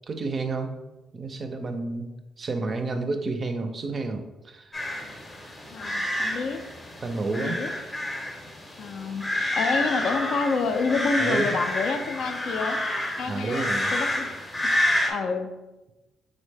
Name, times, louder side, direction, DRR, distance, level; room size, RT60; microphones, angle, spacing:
voice 1, 0.1-0.8 1.1-2.1 2.4-4.7 7.0-7.6 11.2-11.6 13.3-13.9, right 3 dB, 40° right, 7 dB, 0.4 m, -30 dB
sound 1, 4.7-15.1, left 1 dB, 25° left, 0.6 m, -29 dB
voice 2, 5.6-6.6 7.3-7.7 8.8-12.8 13.2-14.3 15.1-15.6, left 4 dB, 70° left, 6 dB, 0.3 m, -28 dB
3.7 x 2.1 x 3.3 m, 1.1 s
cardioid pair, 90°, 0 cm